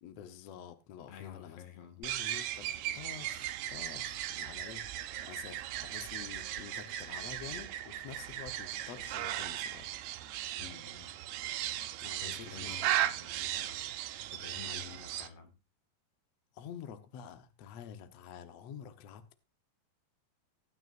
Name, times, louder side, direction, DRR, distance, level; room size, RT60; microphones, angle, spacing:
voice 1, 0.0-1.6 2.0-4.9 5.2-9.9 12.0-12.9 14.6-14.8 16.5-19.3, left 8 dB, 90° left, 1.4 m, -48 dB
voice 2, 1.1-2.1 10.6-11.2 12.2-13.8 14.3-15.6, left 9 dB, 70° left, 4.0 m, -50 dB
sound 1, 2.0-15.3, right 12 dB, 80° right, 2.6 m, -37 dB
18.0 x 9.4 x 2.6 m
omnidirectional pair, 4.9 m